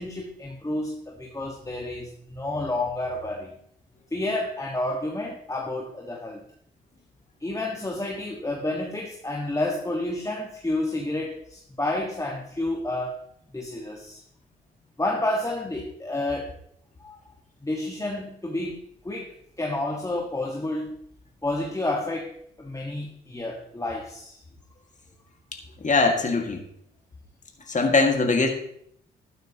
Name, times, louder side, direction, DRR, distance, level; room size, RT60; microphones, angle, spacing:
voice 1, 0.0-3.6 4.1-6.4 7.4-13.2 13.5-14.2 15.0-16.5 17.0-17.2 17.6-21.0 21.4-24.4, left 2 dB, 15° left, 1 dB, 1.5 m, -30 dB
voice 2, 25.8-26.6 27.7-28.5, left 3 dB, 35° left, 3 dB, 1.9 m, -21 dB
12.0 x 9.2 x 2.9 m, 0.71 s
hypercardioid pair, 50°, 21 cm